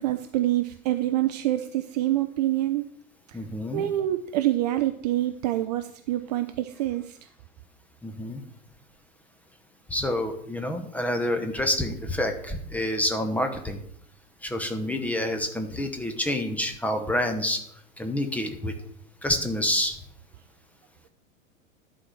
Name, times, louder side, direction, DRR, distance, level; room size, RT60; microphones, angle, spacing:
voice 1, 0.0-2.8 3.3-3.4 3.7-7.2, right 14 dB, 35° right, 9 dB, 0.4 m, -26 dB
voice 2, 3.3-3.8 8.0-8.4 9.9-13.8 14.4-17.6 18.0-18.7 19.2-20.0, left 1 dB, 5° left, 6 dB, 0.8 m, -28 dB
11.0 x 4.4 x 6.3 m, 0.70 s
figure-of-eight pair, 90°, 40 cm